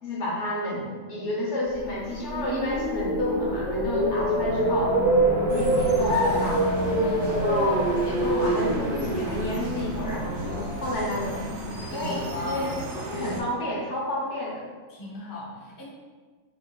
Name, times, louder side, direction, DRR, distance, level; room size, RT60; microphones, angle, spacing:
voice 1, 0.0-4.9 5.3-6.9 7.4-11.5 11.9-12.7 13.1-14.6, left 1 dB, 60° left, -4 dB, 1.1 m, -30 dB
sound 1, 1.9-12.0, right 1 dB, 45° right, 1.3 m, -26 dB
sound 2, 5.5-13.4, right 2 dB, 70° right, 0.5 m, -35 dB
sound 3, 6.1-14.0, left 2 dB, 75° left, 0.4 m, -35 dB
voice 2, 6.9-7.2 12.3-12.8 14.9-15.8, left 1 dB, 20° left, -6 dB, 0.5 m, -36 dB
3.8 x 3.5 x 2.3 m, 1.4 s
omnidirectional pair, 1.5 m